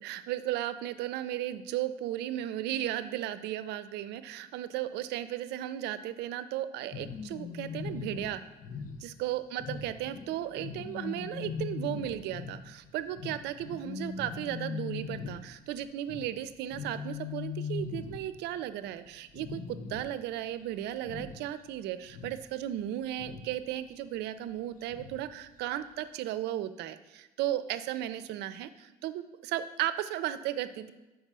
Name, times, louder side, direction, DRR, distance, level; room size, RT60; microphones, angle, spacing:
voice 1, 0.0-8.4 9.0-30.9, right 12 dB, 80° right, 12 dB, 0.5 m, -35 dB
sound 1, 6.9-18.6 18.9-19.1 19.4-20.3 20.6-21.7 22.0-23.6 24.9-25.3 25.7-25.8, left 5 dB, 50° left, 0.6 m, -40 dB
5.5 x 4.7 x 6.0 m, 1.1 s
cardioid pair, 110°, 17 cm